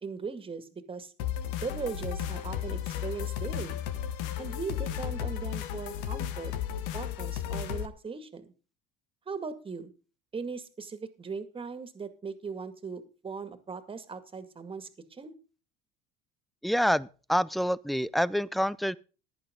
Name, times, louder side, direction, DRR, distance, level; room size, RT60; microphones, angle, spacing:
voice 1, 0.0-1.1 1.5-3.8 4.4-6.5 6.9-8.5 9.3-9.9 10.3-15.3, right 5 dB, 25° right, 2.2 m, -39 dB
sound 1, 1.2-7.9, left 10 dB, 80° left, 1.3 m, -34 dB
voice 2, 16.6-19.0, equal, ahead, 0.5 m, -27 dB
15.0 x 11.0 x 3.8 m
supercardioid pair, 90°, 21 cm